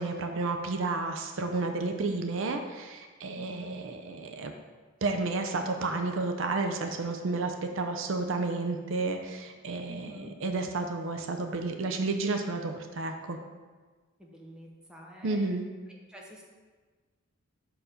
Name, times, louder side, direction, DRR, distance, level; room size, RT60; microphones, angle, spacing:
voice 1, 0.0-4.5 5.0-13.4 15.2-15.7, right 3 dB, 60° right, 5 dB, 0.5 m, -31 dB
voice 2, 3.3-3.7 9.9-10.3 14.2-15.5 15.9-16.4, equal, 5° right, -2 dB, 0.8 m, -49 dB
5.8 x 4.7 x 5.0 m, 1.4 s
head